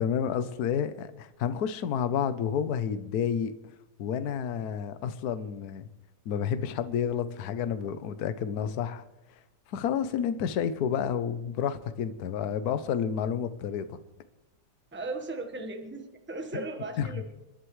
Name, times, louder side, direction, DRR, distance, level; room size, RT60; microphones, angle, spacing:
voice 1, 0.0-3.5 4.0-5.9 6.3-9.0 9.7-14.0 16.5-16.7 17.0-17.1, left 8 dB, 65° left, 11 dB, 1.2 m, -30 dB
voice 2, 14.9-17.3, right 2 dB, 5° right, 5 dB, 1.1 m, -37 dB
29.5 x 11.5 x 3.2 m, 1.0 s
omnidirectional pair, 2.0 m